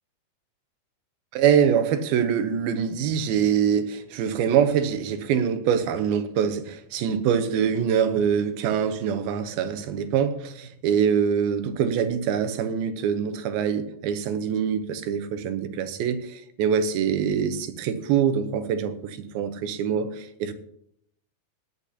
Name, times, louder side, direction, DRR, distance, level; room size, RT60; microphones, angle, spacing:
voice 1, 1.3-20.5, right 8 dB, 85° right, 9 dB, 2.7 m, -24 dB
16.5 x 10.5 x 2.8 m, 0.70 s
omnidirectional pair, 4.2 m